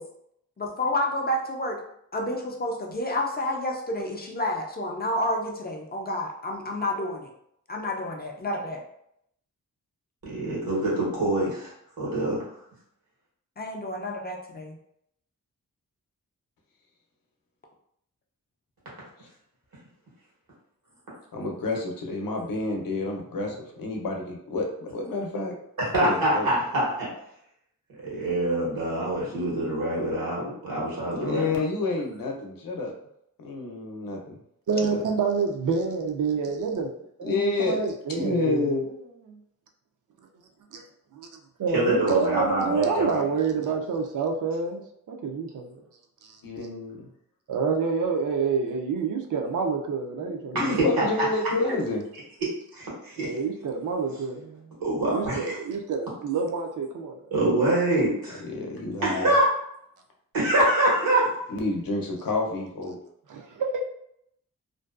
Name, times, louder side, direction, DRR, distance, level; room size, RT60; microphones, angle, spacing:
voice 1, 0.6-1.8 2.1-7.3 7.7-8.8 13.6-14.8, left 1 dB, 30° left, 0 dB, 0.4 m, -29 dB
voice 2, 10.2-11.7 12.0-12.4 25.9-27.1 28.0-31.5 41.7-43.2 50.5-50.8 52.7-53.3 54.8-55.6 57.3-58.4 59.0-59.5 60.3-61.2, right 1 dB, 85° right, -5 dB, 1.2 m, -25 dB
voice 3, 21.3-25.5 26.0-26.5 31.1-32.9 33.4-34.4 34.9-35.0 37.2-37.8 38.2-38.9 46.4-47.1 50.3-52.0 58.3-59.3 61.5-63.0, left 3 dB, 75° left, 1 dB, 0.6 m, -29 dB
voice 4, 34.7-36.9 37.2-38.7 39.3-39.4 40.7-40.8 41.1-41.3 41.6-44.8 45.1-45.7 46.2-46.4 47.5-50.8 53.2-54.8 55.1-57.2 63.3-63.8, right 5 dB, 65° right, 3 dB, 0.5 m, -28 dB
2.5 x 2.2 x 2.3 m, 0.74 s
wide cardioid pair, 110°, 34 cm